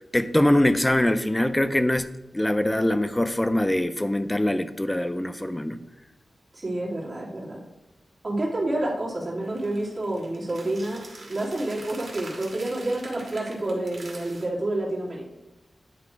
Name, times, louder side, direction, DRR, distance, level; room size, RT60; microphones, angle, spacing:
voice 1, 0.1-5.8, left 1 dB, 10° left, 11 dB, 0.4 m, -23 dB
voice 2, 6.5-7.6 8.2-11.0 11.3-15.3, right 1 dB, 30° right, -6 dB, 2.4 m, -29 dB
sound 1, 9.4-14.4, right 2 dB, 60° right, 1.8 m, -45 dB
9.8 x 3.5 x 4.6 m, 1.0 s
wide cardioid pair, 100°, 0 cm